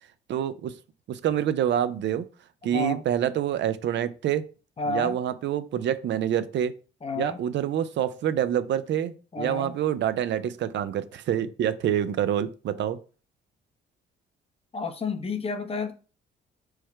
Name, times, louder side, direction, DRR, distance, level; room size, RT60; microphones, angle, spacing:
voice 1, 0.3-0.7 1.1-2.2 2.6-4.4 4.9-6.8 7.2-13.0, right 10 dB, 65° right, 0.5 m, -27 dB
voice 2, 2.7-3.0 4.8-5.2 7.0-7.4 9.3-9.7 14.7-15.9, left 3 dB, 30° left, 0.7 m, -30 dB
4.6 x 2.2 x 4.6 m
cardioid pair, 90°, 20 cm